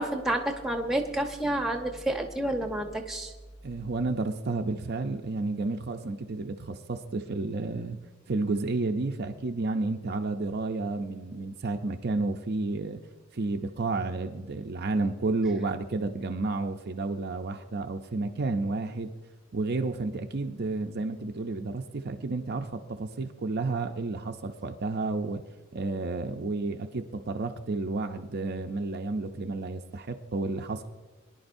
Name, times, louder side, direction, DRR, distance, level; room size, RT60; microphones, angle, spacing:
voice 1, 0.0-3.3, right 1 dB, ahead, 3 dB, 1.0 m, -29 dB
voice 2, 3.6-8.0 8.3-13.0 13.3-19.1 19.5-25.4 25.7-30.9, right 3 dB, 50° right, 5 dB, 0.6 m, -31 dB
23.0 x 10.5 x 2.6 m, 1.2 s
head